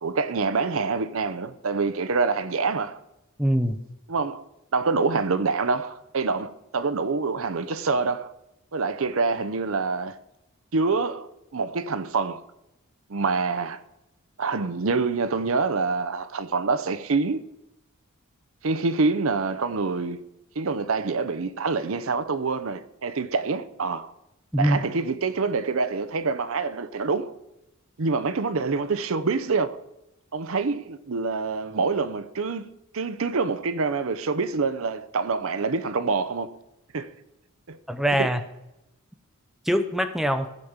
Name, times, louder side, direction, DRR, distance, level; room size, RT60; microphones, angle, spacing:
voice 1, 0.0-3.0 4.1-4.4 4.7-8.3 8.7-10.2 10.7-12.4 13.1-13.8 14.4-17.4 18.6-20.2 20.6-24.1 24.6-27.3 28.0-29.8 30.3-32.7 32.9-36.6 36.9-37.1 37.7-37.8 38.2-38.3, right 4 dB, 65° right, 0.7 m, -26 dB
voice 2, 3.4-3.8 24.5-24.8 37.9-38.4 39.7-40.5, equal, ahead, 0.6 m, -23 dB
14.5 x 5.2 x 7.2 m
head